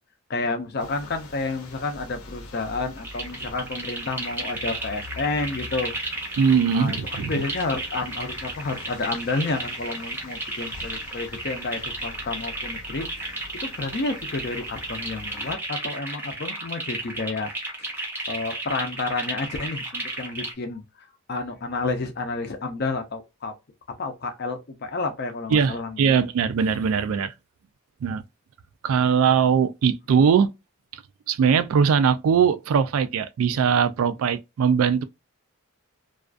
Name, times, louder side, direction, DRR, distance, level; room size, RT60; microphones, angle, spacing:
voice 1, 0.3-5.9 6.7-13.3 13.6-17.5 17.8-18.0 18.3-20.8 21.3-23.5 24.0-26.2, left 3 dB, 45° left, 0.5 m, -30 dB
sound 1, 0.8-15.6, left 3 dB, 80° left, 0.7 m, -44 dB
sound 2, 3.0-20.5, right 2 dB, 10° right, 0.5 m, -33 dB
voice 2, 6.4-7.3 25.5-27.3 28.0-28.2 28.8-30.5 30.9-31.0 31.3-35.0, right 6 dB, 70° right, 0.3 m, -21 dB
2.4 x 2.2 x 2.4 m
head